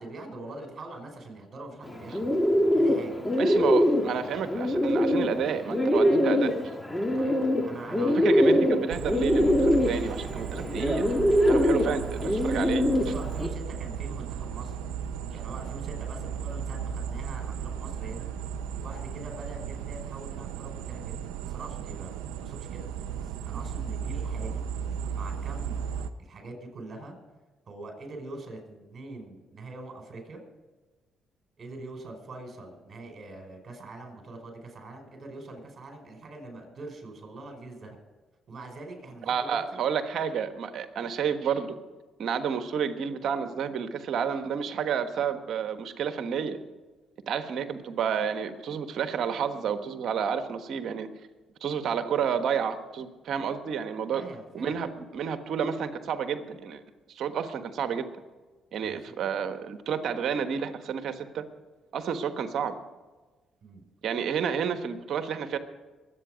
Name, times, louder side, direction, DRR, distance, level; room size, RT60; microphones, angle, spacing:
voice 1, 0.0-2.2 2.8-3.7 7.1-7.4 7.6-8.7 11.7-11.9 12.5-14.8 15.3-18.3 18.7-22.1 22.4-24.6 25.1-27.2 27.7-30.4 31.6-38.0 38.5-39.8 54.1-54.8 58.8-59.0 63.6-63.8, right 2 dB, 45° right, 3 dB, 5.3 m, -43 dB
Bird, 1.8-13.5, equal, 10° left, 2.0 m, -24 dB
voice 2, 3.4-6.5 8.0-11.1 11.5-12.8 39.3-41.8 42.2-46.6 47.3-51.1 51.6-54.2 54.5-56.8 57.1-58.1 58.7-61.4 61.9-62.7 64.0-65.6, right 7 dB, 65° right, 9 dB, 1.2 m, -30 dB
sound 1, 8.9-26.1, right 8 dB, 90° right, 0.7 m, -35 dB
22.5 x 8.8 x 5.1 m, 1.2 s
supercardioid pair, 60°, 0 cm